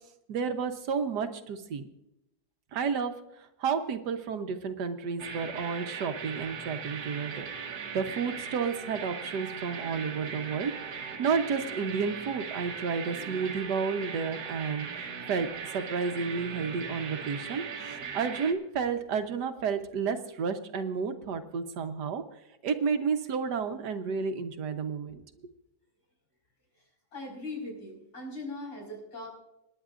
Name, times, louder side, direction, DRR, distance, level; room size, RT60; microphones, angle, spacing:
voice 1, 0.3-1.9 2.7-3.1 3.6-7.5 7.9-15.5 15.7-17.6 18.0-22.2 22.6-25.2, right 5 dB, 90° right, 7 dB, 1.6 m, -31 dB
sound 1, 5.2-18.5, right 6 dB, 70° right, 1.7 m, -39 dB
voice 2, 27.1-29.3, left 2 dB, 80° left, -1 dB, 6.0 m, -39 dB
27.5 x 10.0 x 2.5 m, 0.86 s
omnidirectional pair, 1.7 m